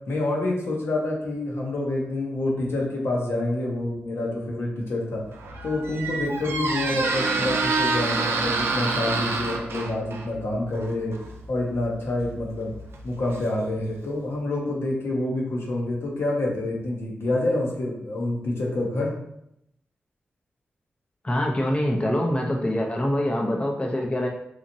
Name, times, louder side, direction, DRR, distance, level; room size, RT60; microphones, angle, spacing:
voice 1, 0.1-5.2 5.6-11.2 11.5-12.7 13.0-19.1, left 2 dB, 70° left, -2 dB, 0.8 m, -27 dB
Squeak, 5.2-14.0, right 3 dB, 70° right, 0.4 m, -28 dB
voice 2, 21.2-24.3, left 1 dB, 25° left, 0 dB, 0.6 m, -24 dB
3.0 x 2.4 x 2.6 m, 0.76 s
supercardioid pair, 40°, 4 cm